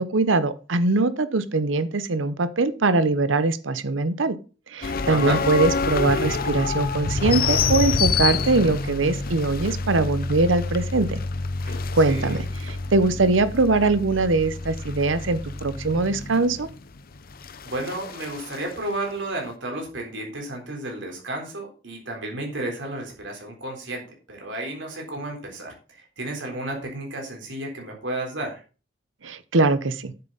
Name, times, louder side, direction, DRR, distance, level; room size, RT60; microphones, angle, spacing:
voice 1, 0.0-4.4 4.7-11.2 11.9-16.7 29.2-30.1, right 3 dB, 90° right, 14 dB, 0.9 m, -22 dB
sound 1, 4.8-18.7, left 4 dB, 50° left, 0.7 m, -27 dB
voice 2, 5.1-5.4 12.1-12.4 17.6-28.6, right 1 dB, 70° right, 1 dB, 3.8 m, -32 dB
9.7 x 7.7 x 4.0 m, 0.35 s
head